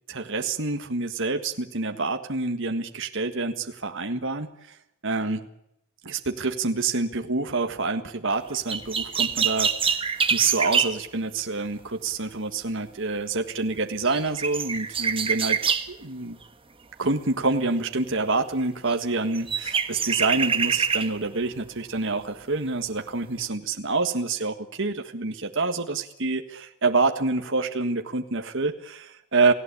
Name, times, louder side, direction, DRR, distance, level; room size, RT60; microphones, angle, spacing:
voice 1, 0.1-4.8 5.0-5.5 6.0-10.0 10.3-15.6 15.9-16.4 17.0-29.5, right 3 dB, 55° right, 5 dB, 1.7 m, -27 dB
sound 1, 8.7-11.0 13.8-13.9 14.0-15.9 18.9-19.0 19.4-21.1 21.7-21.8, right 6 dB, 25° right, 1.5 m, -25 dB
30.0 x 17.0 x 8.5 m, 0.81 s
head